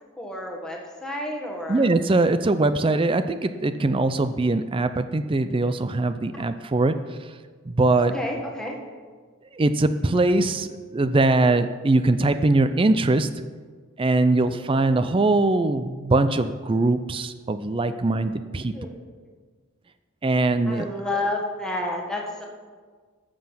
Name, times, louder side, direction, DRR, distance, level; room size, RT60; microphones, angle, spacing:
voice 1, 0.2-1.9 6.3-6.4 8.0-8.8 18.7-18.9 20.7-22.5, left 1 dB, 5° left, -1 dB, 1.5 m, -30 dB
voice 2, 1.7-7.3 7.7-8.1 9.5-13.3 14.0-18.7 20.2-20.9, right 2 dB, 25° right, 11 dB, 0.4 m, -22 dB
13.0 x 7.6 x 5.7 m, 1.5 s
head